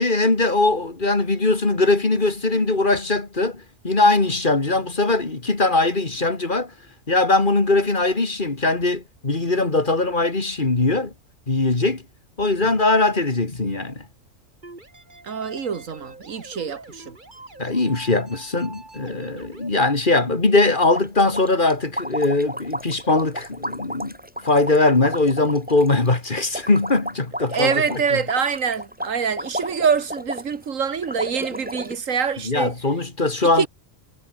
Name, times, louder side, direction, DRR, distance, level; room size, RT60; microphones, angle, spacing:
voice 1, 0.0-6.7 7.1-11.1 11.5-12.0 12.4-14.1 17.6-24.1 24.4-28.2 32.4-33.7, left 2 dB, 40° left, 2.6 m, -21 dB
sound 1, 14.6-19.7, right 2 dB, 35° right, 3.2 m, -44 dB
voice 2, 15.2-17.1 27.5-32.7 33.6-33.7, right 6 dB, 85° right, 1.9 m, -25 dB
sound 2, 20.8-30.6 31.0-32.0, equal, 5° right, 5.3 m, -32 dB
omnidirectional pair, 1.3 m